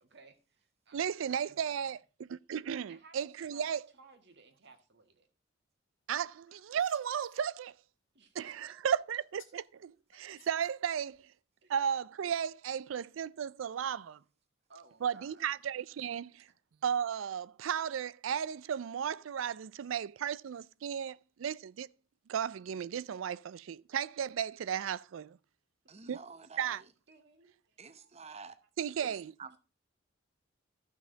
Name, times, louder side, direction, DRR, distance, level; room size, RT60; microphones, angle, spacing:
voice 1, 0.0-1.5 2.9-3.7 4.0-5.3 8.1-8.9 11.6-11.7 14.7-15.5 25.8-26.0 27.1-28.2, right 4 dB, 60° right, 1.7 m, -59 dB
voice 2, 0.9-3.9 6.1-7.7 8.3-11.2 11.7-14.2 15.0-16.5 16.8-21.9 22.3-25.4 26.1-26.2 26.6-26.8 28.8-29.3, right 8 dB, 85° right, 0.4 m, -35 dB
sound 1, 6.1-7.4 8.6-8.7 9.2-9.6 10.1-11.2, left 6 dB, 85° left, 2.7 m, -62 dB
voice 3, 25.9-26.9 27.8-28.6 29.0-29.6, right 4 dB, 35° right, 0.8 m, -50 dB
13.5 x 5.9 x 3.9 m
head